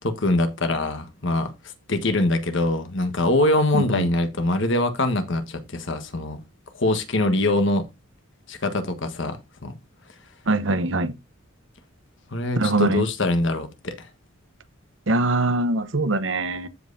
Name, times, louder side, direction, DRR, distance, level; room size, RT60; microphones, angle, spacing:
voice 1, 0.0-1.5 1.9-6.4 6.7-7.9 8.5-9.7 12.3-14.1, left 2 dB, 65° left, 1.4 m, -23 dB
voice 2, 3.7-4.1 10.5-11.1 12.6-13.0 15.1-16.7, right 2 dB, 65° right, 1.0 m, -22 dB
14.5 x 5.4 x 2.7 m
head